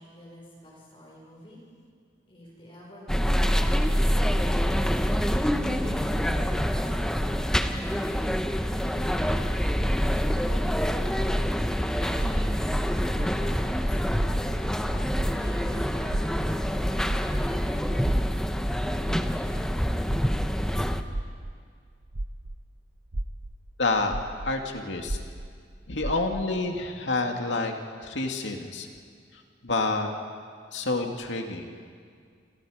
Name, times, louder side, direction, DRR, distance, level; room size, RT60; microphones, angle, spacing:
voice 1, 0.0-1.6 2.3-5.0 5.3-8.4 8.8-11.2 11.9-14.7 15.3-17.7, equal, 30° left, -3 dB, 5.8 m, -48 dB
sound 1, 3.1-21.0, equal, 5° left, 0.9 m, -26 dB
sound 2, 12.2-14.8 15.1-22.7 23.1-26.6, right 1 dB, 70° right, 1.0 m, -35 dB
voice 2, 23.8-24.2 24.4-25.2 25.9-27.8 28.0-28.9 29.3-30.1 30.7-31.7, left 3 dB, 75° left, 3 dB, 2.4 m, -28 dB
28.5 x 27.5 x 5.1 m, 2.1 s
head